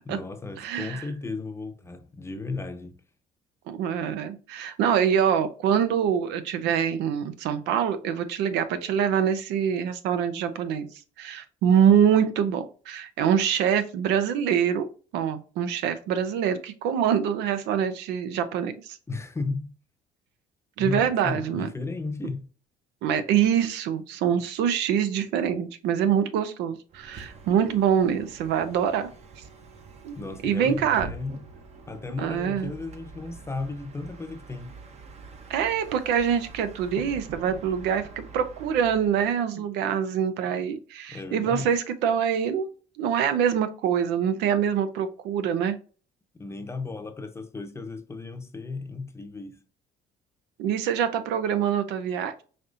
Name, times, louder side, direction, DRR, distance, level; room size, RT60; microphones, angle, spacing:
voice 1, 0.0-3.0 19.1-19.7 20.8-22.5 30.1-31.4 31.9-34.8 39.5-39.6 41.1-41.7 46.4-49.6, left 3 dB, 15° left, 0.7 m, -34 dB
voice 2, 0.6-1.0 3.7-10.9 11.2-14.9 15.1-19.0 20.8-21.7 23.0-29.1 30.0-30.2 30.4-31.1 32.2-32.7 35.5-42.7 43.0-45.8 50.6-52.4, right 8 dB, 90° right, 0.7 m, -25 dB
Bus, 26.9-39.3, right 4 dB, 40° right, 0.8 m, -45 dB
5.2 x 2.8 x 2.5 m
cardioid pair, 110°, 17 cm